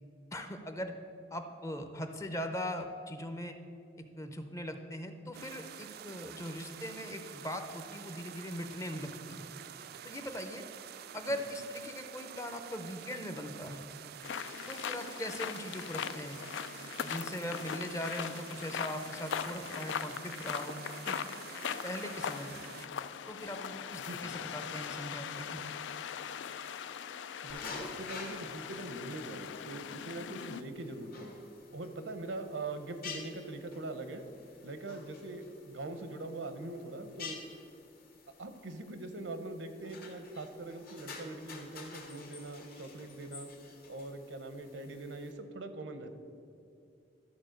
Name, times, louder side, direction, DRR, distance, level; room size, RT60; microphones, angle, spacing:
voice 1, 0.3-0.9 1.3-3.6 4.2-9.5 10.0-10.6 11.1-13.8 14.7-16.4 17.0-20.8 21.0-21.2 21.8-22.6 23.3-25.6, equal, 15° left, 7 dB, 0.6 m, -40 dB
sound 1, 5.3-22.9, right 9 dB, 55° right, 0.4 m, -48 dB
sound 2, 14.2-30.6, left 8 dB, 75° left, 0.4 m, -40 dB
voice 2, 27.4-31.3 31.7-34.2 34.6-37.4 38.4-43.5 43.9-46.1, right 2 dB, 80° right, 8 dB, 0.8 m, -42 dB
sound 3, 27.5-45.3, left 4 dB, 55° left, 1.3 m, -50 dB
12.5 x 4.3 x 6.4 m, 2.5 s
head